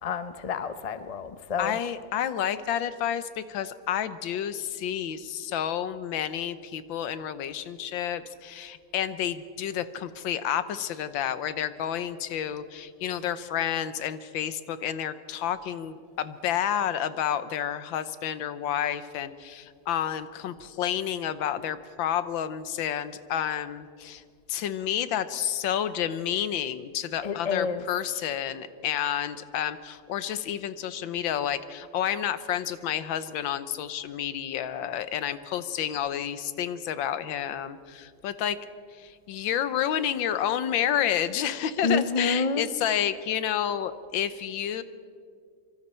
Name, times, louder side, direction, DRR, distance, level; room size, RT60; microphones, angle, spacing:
voice 1, 0.0-1.8 27.2-27.8 41.8-42.7, left 4 dB, 45° left, 11 dB, 0.5 m, -28 dB
voice 2, 1.6-24.2 24.5-38.6 39.0-44.8, left 10 dB, 90° left, 13 dB, 1.6 m, -30 dB
25.5 x 24.5 x 4.4 m, 2.2 s
omnidirectional pair, 2.0 m